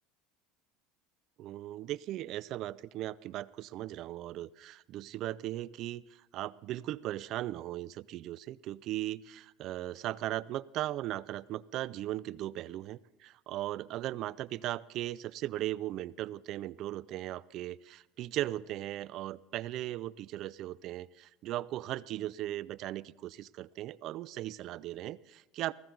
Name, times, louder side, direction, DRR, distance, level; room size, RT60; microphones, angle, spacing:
voice 1, 1.4-6.0 6.3-25.7, right 14 dB, 55° right, 20 dB, 0.4 m, -38 dB
15.0 x 15.0 x 3.9 m, 1.1 s
supercardioid pair, 115°, 0 cm